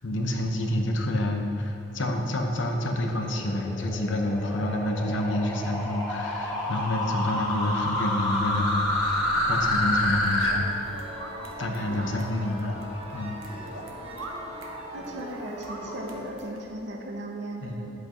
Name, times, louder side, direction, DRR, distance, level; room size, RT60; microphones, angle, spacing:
voice 1, 0.0-10.7 11.6-13.4 17.6-17.9, left 1 dB, 65° left, 3 dB, 0.8 m, -28 dB
sound 1, 2.5-10.5, left 1 dB, 20° left, 1.7 m, -28 dB
sound 2, 10.3-16.3, equal, 30° right, 1.4 m, -40 dB
sound 3, 10.3-16.7, right 2 dB, 85° right, 0.9 m, -44 dB
voice 2, 11.8-12.2 14.9-17.9, right 1 dB, 60° right, 1 dB, 0.8 m, -37 dB
11.0 x 7.9 x 3.1 m, 2.7 s
head